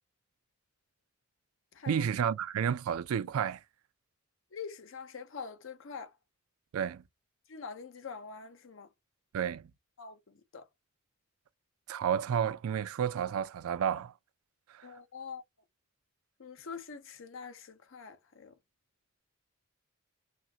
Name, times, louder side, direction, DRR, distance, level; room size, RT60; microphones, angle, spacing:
voice 1, 1.9-3.6 6.7-7.0 9.3-9.7 11.9-14.1 14.7-14.9, right 8 dB, 85° right, 0.3 m, -31 dB
voice 2, 4.5-6.1 7.5-8.9 10.0-10.7 14.8-15.4 16.4-18.5, left 5 dB, 65° left, 0.6 m, -44 dB
2.5 x 2.4 x 2.7 m
head